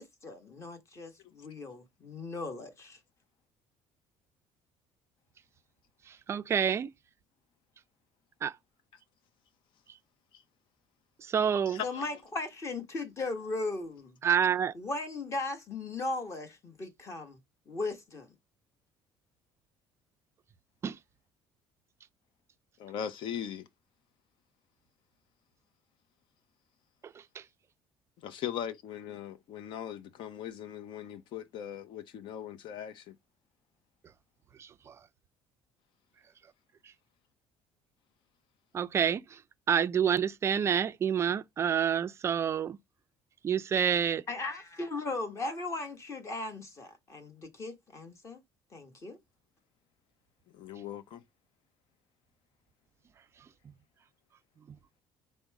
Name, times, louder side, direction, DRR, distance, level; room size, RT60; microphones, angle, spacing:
voice 1, 0.0-3.0 11.8-14.2 14.7-17.4 17.7-18.3 44.3-48.4 48.7-49.2, left 3 dB, 30° left, 1.2 m, -37 dB
voice 2, 6.1-6.9 8.4-8.5 11.2-11.8 14.2-14.7 20.8-21.0 27.0-27.4 34.6-35.0 38.7-39.4 39.7-42.8 43.4-44.2, right 8 dB, 25° right, 0.4 m, -28 dB
voice 3, 11.7-12.1 22.8-23.7 28.2-33.2 50.5-51.2, left 9 dB, 55° left, 0.7 m, -39 dB
5.1 x 2.1 x 4.6 m
cardioid pair, 150°, 10 cm